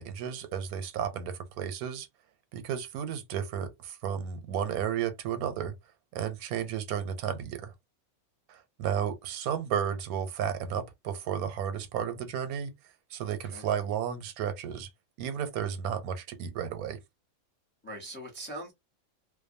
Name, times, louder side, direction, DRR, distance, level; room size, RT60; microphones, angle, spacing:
voice 1, 0.0-2.1 2.5-5.7 6.1-7.7 8.5-12.7 13.1-14.9 15.2-17.0, right 8 dB, 85° right, 1.1 m, -33 dB
voice 2, 13.2-13.6 17.8-18.7, right 1 dB, 10° left, 0.6 m, -42 dB
2.6 x 2.2 x 2.5 m
omnidirectional pair, 1.5 m